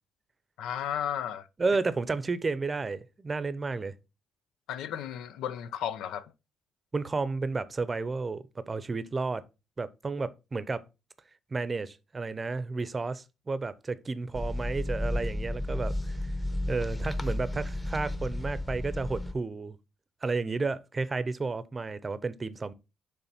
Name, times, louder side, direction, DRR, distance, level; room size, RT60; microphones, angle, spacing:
voice 1, 0.6-1.5 4.7-6.3, left 9 dB, 90° left, 0.5 m, -34 dB
voice 2, 1.6-3.9 6.9-9.4 9.8-10.8 11.5-16.2 16.7-19.8 20.2-22.7, right 3 dB, 30° right, 0.7 m, -32 dB
sound 1, 14.3-19.3, left 1 dB, 15° left, 0.9 m, -32 dB
6.9 x 3.2 x 5.9 m
cardioid pair, 90°, 0 cm